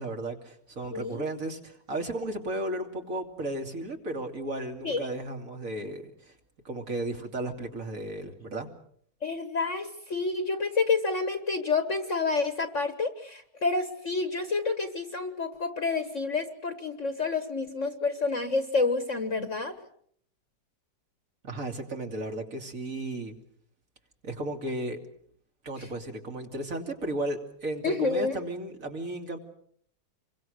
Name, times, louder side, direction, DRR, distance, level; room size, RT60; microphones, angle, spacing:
voice 1, 0.0-6.3 6.6-8.7 21.4-23.3 24.2-25.0 25.6-29.4, right 1 dB, 45° right, 4 dB, 3.1 m, -34 dB
voice 2, 0.9-1.2 4.8-5.1 9.2-19.7 25.8-25.9 27.8-28.4, left 4 dB, 45° left, 9 dB, 1.6 m, -29 dB
28.0 x 23.5 x 6.5 m, 0.65 s
omnidirectional pair, 1.9 m